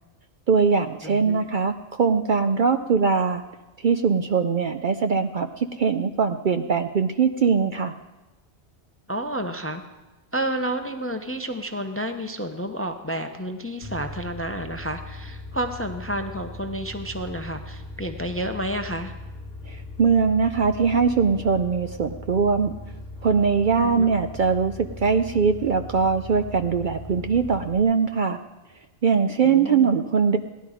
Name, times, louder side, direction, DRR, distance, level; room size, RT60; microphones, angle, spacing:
voice 1, 0.5-3.4 3.8-7.9 19.7-22.8 23.2-28.4 29.0-30.4, right 5 dB, 55° right, 8 dB, 0.6 m, -21 dB
voice 2, 1.0-1.4 9.1-9.8 10.3-19.1 23.8-24.1 29.4-29.9, right 1 dB, 15° left, 7 dB, 0.5 m, -30 dB
sound 1, 13.8-27.8, left 2 dB, 55° left, 1.2 m, -39 dB
17.0 x 11.5 x 4.9 m, 1.1 s
omnidirectional pair, 1.2 m